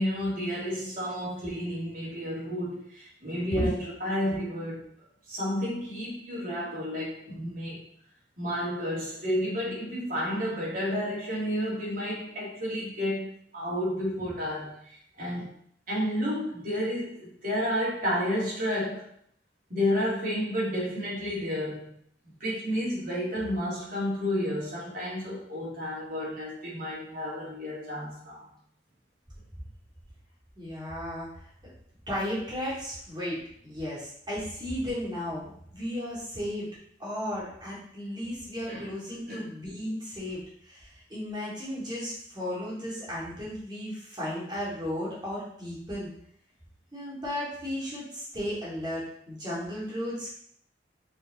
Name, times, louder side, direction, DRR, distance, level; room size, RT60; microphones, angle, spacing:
voice 1, 0.0-4.8 5.3-7.8 8.4-15.5 15.9-19.1 19.7-22.0 22.4-28.4 38.7-38.9 39.3-39.4, equal, 55° right, -6 dB, 3.1 m, -31 dB
voice 2, 30.6-31.7 32.1-36.7 37.0-46.1 46.9-50.3, equal, 25° right, -7 dB, 2.9 m, -35 dB
5.5 x 5.2 x 4.4 m, 0.64 s
head